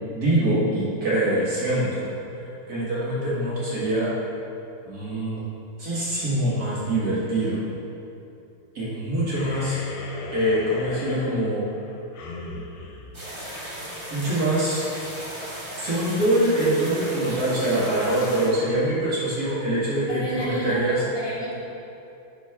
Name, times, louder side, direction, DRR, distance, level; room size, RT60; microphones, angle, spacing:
voice 1, 0.1-2.1 2.5-4.1 4.9-5.4 5.8-7.6 8.7-9.8 10.3-11.6 14.1-14.9 15.8-21.0, right 1 dB, 45° right, -9 dB, 2.2 m, -24 dB
sound 1, 9.3-14.0, left 2 dB, 65° left, 1.2 m, -38 dB
sound 2, 13.1-18.5, equal, 15° right, 1.0 m, -36 dB
voice 2, 20.1-21.5, equal, 15° left, -7 dB, 1.0 m, -30 dB
10.5 x 4.5 x 3.6 m, 2.7 s
omnidirectional pair, 2.4 m